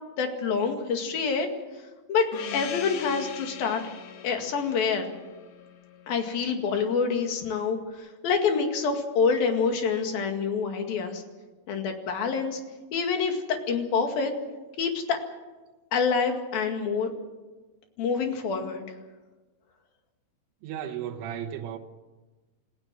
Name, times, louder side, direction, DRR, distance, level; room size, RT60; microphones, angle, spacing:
voice 1, 0.2-1.5 2.1-3.8 4.2-5.1 6.1-11.2 11.7-12.6 12.9-14.3 14.8-15.2 15.9-17.1 18.0-18.8, left 5 dB, 55° left, 3.6 m, -27 dB
Gong, 2.3-6.7, left 9 dB, 90° left, 4.3 m, -41 dB
voice 2, 20.6-21.8, right 9 dB, 90° right, 3.7 m, -34 dB
28.5 x 16.0 x 7.6 m
omnidirectional pair, 5.5 m